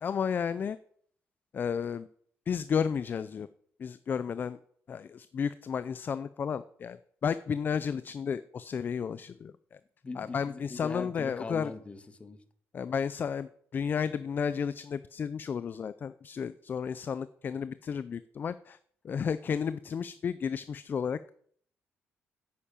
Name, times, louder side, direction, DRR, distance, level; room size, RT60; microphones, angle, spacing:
voice 1, 0.0-0.8 1.5-2.1 2.5-3.5 3.8-4.6 4.9-9.8 10.2-11.7 12.7-18.8 19.0-21.3, left 7 dB, 40° left, 15 dB, 0.5 m, -32 dB
voice 2, 10.0-12.4, left 3 dB, 25° left, 10 dB, 1.6 m, -41 dB
10.5 x 8.5 x 8.8 m, 0.62 s
cardioid pair, 120°, 5 cm